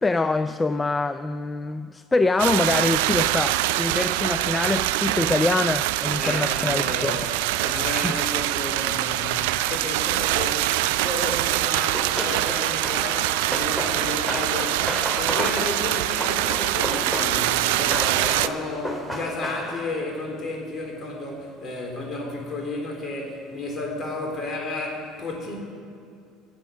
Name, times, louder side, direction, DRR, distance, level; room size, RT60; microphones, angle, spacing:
voice 1, 0.0-7.1 8.0-8.1, left 3 dB, 20° left, 11 dB, 0.4 m, -24 dB
sound 1, 2.4-18.5, right 15 dB, 75° right, 0.3 m, -24 dB
voice 2, 6.2-25.6, left 2 dB, 40° left, 0 dB, 3.4 m, -32 dB
Run, 11.8-19.9, equal, ahead, 2.2 m, -32 dB
15.0 x 7.6 x 6.3 m, 2.5 s
hypercardioid pair, 70°, 0 cm